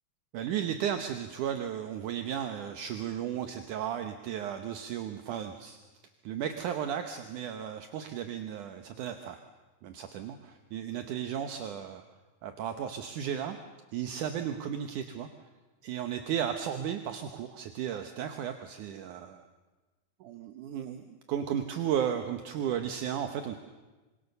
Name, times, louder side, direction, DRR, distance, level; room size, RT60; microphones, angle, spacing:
voice 1, 0.3-5.8 6.2-9.4 9.8-12.0 12.4-13.6 13.9-15.3 15.8-19.4 20.2-23.6, right 9 dB, 65° right, 7 dB, 2.1 m, -34 dB
27.5 x 25.5 x 6.8 m, 1.2 s
omnidirectional pair, 4.7 m